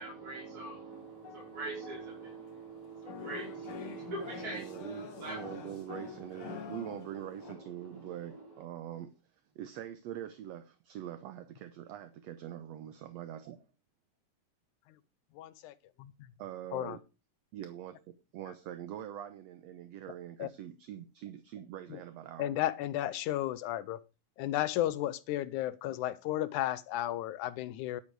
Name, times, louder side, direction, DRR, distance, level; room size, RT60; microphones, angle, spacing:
voice 1, 0.0-8.6, right 3 dB, 25° right, 5.1 m, -44 dB
sound 1, 0.9-2.4 3.1-7.5, left 7 dB, 50° left, 2.3 m, -46 dB
voice 2, 4.5-9.1 9.6-13.6 16.4-17.0 17.5-18.0 18.3-22.6, right 11 dB, 70° right, 1.8 m, -43 dB
voice 3, 15.4-16.3 16.7-17.0 20.4-20.5 21.9-22.0 22.4-24.0 24.4-28.0, left 13 dB, 80° left, 2.1 m, -34 dB
11.0 x 8.8 x 4.7 m
omnidirectional pair, 3.6 m